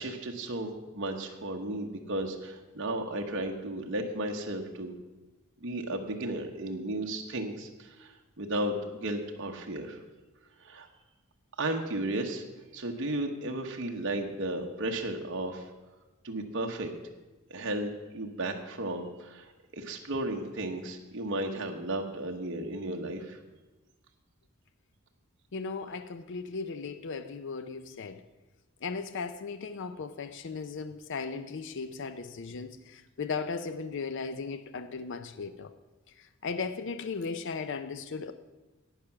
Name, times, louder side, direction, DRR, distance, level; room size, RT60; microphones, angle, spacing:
voice 1, 0.0-5.0 5.6-8.1 8.4-10.0 10.6-10.9 11.6-12.4 12.7-15.7 16.2-16.9 17.5-19.5 19.7-23.4, right 1 dB, 55° right, 2 dB, 1.0 m, -34 dB
voice 2, 25.5-28.2 28.8-35.7 36.2-38.3, left 4 dB, 55° left, 11 dB, 0.5 m, -37 dB
11.5 x 8.7 x 5.8 m, 1.1 s
head